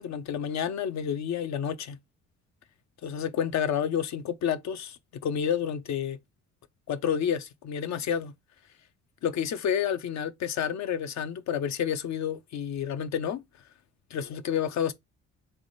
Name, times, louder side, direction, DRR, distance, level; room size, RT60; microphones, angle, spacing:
voice 1, 0.0-2.0 3.0-6.2 6.9-8.3 9.2-13.4 14.1-14.9, left 8 dB, 65° left, 0.6 m, -30 dB
3.5 x 3.1 x 3.8 m
cardioid pair, 90°, 30 cm